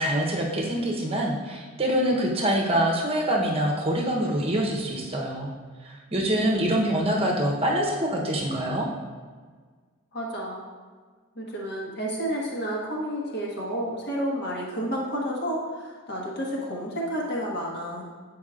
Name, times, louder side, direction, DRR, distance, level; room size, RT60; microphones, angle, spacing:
voice 1, 0.0-5.5 5.8-8.9, right 1 dB, 25° right, -1 dB, 0.8 m, -25 dB
voice 2, 10.1-10.6 11.3-18.0, equal, 50° left, -3 dB, 1.2 m, -30 dB
8.1 x 4.7 x 2.4 m, 1.5 s
head